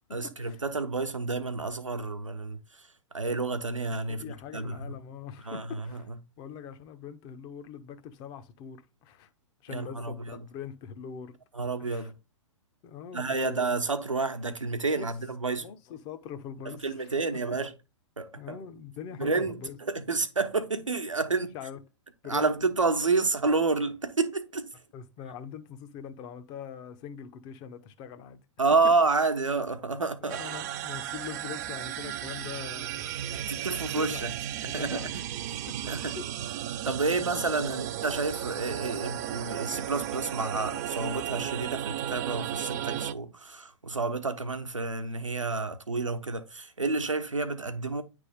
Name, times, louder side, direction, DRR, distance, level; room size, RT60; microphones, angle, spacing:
voice 1, 0.1-2.6 3.1-4.2 4.5-4.8 5.5-6.0 9.7-10.4 11.5-12.1 13.1-15.7 16.7-17.7 18.2-18.5 19.2-21.5 22.3-24.7 28.6-30.4 33.3-34.3 34.6-35.2 35.9-36.2 36.9-48.0, right 3 dB, 80° right, 1.0 m, -29 dB
voice 2, 4.2-6.1 6.4-9.3 9.6-11.4 11.8-12.1 12.8-13.7 14.9-15.1 15.6-17.6 18.4-19.8 21.5-21.8 22.2-22.5 24.9-28.4 30.2-34.3 34.8-35.3 35.7-36.3 37.2-37.9, left 8 dB, 25° left, 0.8 m, -43 dB
sound 1, 30.3-43.1, right 11 dB, 35° right, 0.4 m, -35 dB
9.7 x 3.5 x 3.5 m
figure-of-eight pair, 110°, 16 cm